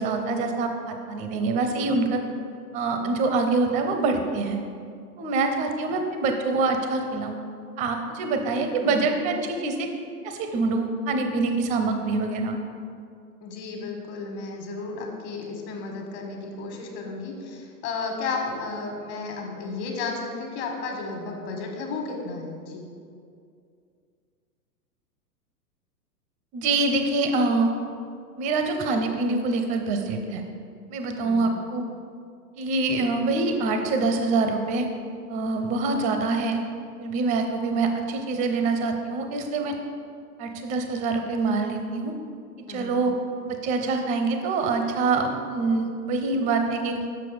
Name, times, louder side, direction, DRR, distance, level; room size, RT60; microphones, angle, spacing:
voice 1, 0.0-2.2 2.7-4.6 5.2-7.4 7.8-9.9 10.2-12.6 26.5-27.7 28.4-30.4 30.9-31.8 32.6-34.9 35.3-36.6 37.0-39.7 40.4-42.1 42.7-43.1 43.4-46.9, right 3 dB, 15° right, 5 dB, 0.5 m, -25 dB
voice 2, 8.6-9.0 13.4-22.9 31.2-31.5 42.7-43.0, left 4 dB, 45° left, 1 dB, 1.6 m, -33 dB
7.1 x 5.8 x 5.0 m, 2.4 s
figure-of-eight pair, 105°, 48 cm